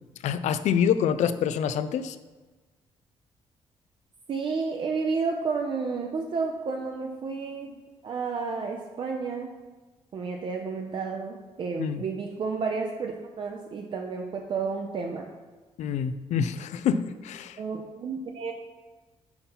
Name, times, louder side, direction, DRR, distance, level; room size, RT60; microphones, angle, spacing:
voice 1, 0.2-2.2 11.8-12.0 15.8-17.6, left 8 dB, 90° left, 12 dB, 0.4 m, -26 dB
voice 2, 4.3-9.5 10.1-15.2 17.6-18.5, right 4 dB, 45° right, 2 dB, 0.5 m, -31 dB
5.8 x 4.2 x 5.3 m, 1.3 s
wide cardioid pair, 145°, 12 cm